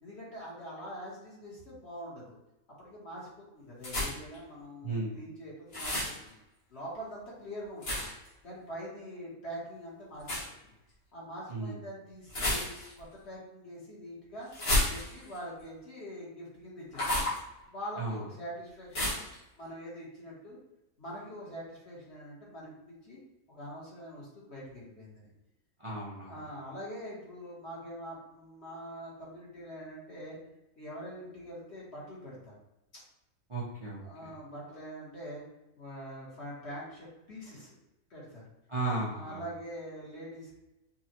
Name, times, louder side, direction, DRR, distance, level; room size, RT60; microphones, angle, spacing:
voice 1, 0.0-2.4 2.8-6.3 6.7-8.1 8.4-10.3 10.6-10.7 11.1-12.7 13.0-14.5 14.9-17.3 17.7-19.2 19.6-20.6 21.0-23.2 23.5-25.3 26.2-30.4 30.7-32.5 32.9-33.0 34.0-35.4 35.8-37.8 38.1-38.5 39.1-40.6, equal, 45° left, -5 dB, 1.4 m, -44 dB
sound 1, 3.8-4.4 5.7-6.2 7.8-8.3 10.2-10.5 12.3-13.0 14.5-15.4 16.9-17.4 18.9-19.3, left 1 dB, 80° left, 2.2 m, -31 dB
voice 2, 4.8-5.1 11.5-11.8 18.0-18.2 25.8-26.3 33.5-34.0 38.7-39.4, right 2 dB, 30° right, -7 dB, 0.7 m, -34 dB
5.5 x 2.3 x 2.9 m, 0.95 s
omnidirectional pair, 1.6 m